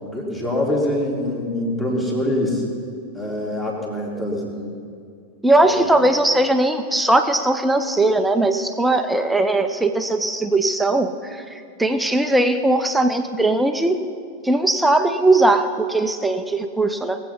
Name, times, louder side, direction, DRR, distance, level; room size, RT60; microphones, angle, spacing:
voice 1, 0.0-2.6 3.1-4.8 5.6-6.0, left 1 dB, 10° left, -2 dB, 2.6 m, -25 dB
voice 2, 5.4-14.0 14.4-17.2, right 2 dB, 5° right, 7 dB, 0.7 m, -19 dB
19.5 x 8.0 x 5.6 m, 2.3 s
figure-of-eight pair, 90°, 0 cm